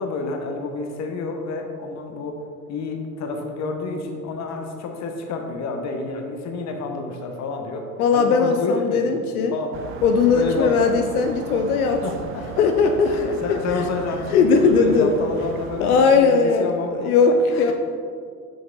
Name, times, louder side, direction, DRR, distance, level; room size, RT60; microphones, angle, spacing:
voice 1, 0.0-2.4 2.7-9.1 9.5-9.8 10.3-10.7 12.0-17.7, left 3 dB, 40° left, 3 dB, 1.0 m, -29 dB
voice 2, 8.0-9.5 10.0-12.0 12.6-13.6 14.3-15.1 15.8-16.7 17.0-17.7, left 5 dB, 80° left, 5 dB, 0.5 m, -18 dB
sound 1, 9.7-16.1, right 6 dB, 30° right, 0.4 m, -36 dB
5.9 x 5.0 x 3.8 m, 2.2 s
figure-of-eight pair, 70°, 43 cm